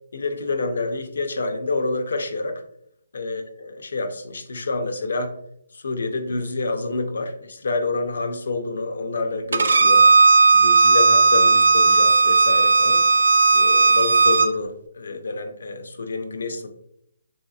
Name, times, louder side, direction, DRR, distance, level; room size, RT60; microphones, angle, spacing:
voice 1, 0.1-2.6 3.1-5.3 5.7-10.1 10.5-13.1 13.5-16.7, left 3 dB, 75° left, 7 dB, 0.5 m, -28 dB
Bowed string instrument, 9.5-14.5, right 3 dB, 80° right, 0.3 m, -15 dB
3.1 x 2.7 x 2.3 m, 0.73 s
hypercardioid pair, 160°, 0 cm